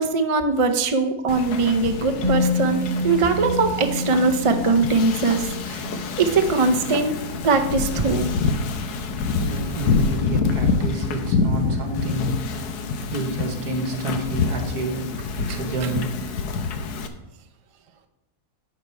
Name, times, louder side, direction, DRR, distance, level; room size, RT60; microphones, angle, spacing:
voice 1, 0.0-5.8 6.2-7.2 7.4-8.3 15.5-15.9, right 4 dB, 50° right, 6 dB, 0.3 m, -21 dB
Wind / Ocean, 1.3-17.1, left 4 dB, 85° left, 1.3 m, -27 dB
Musical instrument, 2.2-10.1 10.4-10.6, left 2 dB, 20° left, 3.5 m, -30 dB
voice 2, 9.4-12.4 13.1-15.1 15.4-16.2, right 3 dB, 75° right, 4 dB, 1.9 m, -29 dB
10.5 x 6.6 x 4.5 m, 0.95 s
omnidirectional pair, 1.7 m